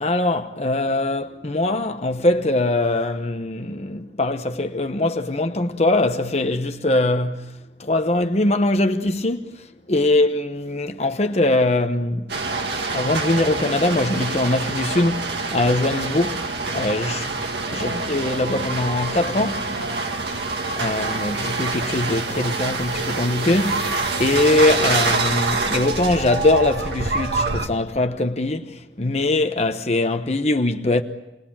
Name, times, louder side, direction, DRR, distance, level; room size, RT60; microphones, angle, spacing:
voice 1, 0.0-7.5 7.8-12.3 12.9-16.4 16.7-17.2 17.7-19.7 20.8-31.0, left 2 dB, 35° left, 1.0 m, -22 dB
sound 1, 12.3-27.7, right 3 dB, 70° right, 2.0 m, -26 dB
28.5 x 21.0 x 8.8 m
head